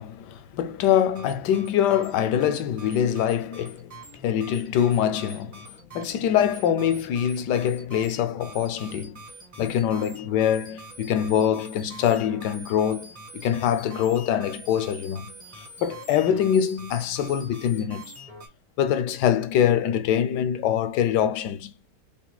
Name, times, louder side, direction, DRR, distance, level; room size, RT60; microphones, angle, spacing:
voice 1, 0.0-3.9 4.2-9.2 9.6-15.3 15.8-18.1 18.8-21.7, left 9 dB, 90° left, 1.2 m, -24 dB
sound 1, 1.1-18.5, right 1 dB, 20° right, 1.8 m, -45 dB
5.4 x 2.4 x 2.3 m
omnidirectional pair, 1.8 m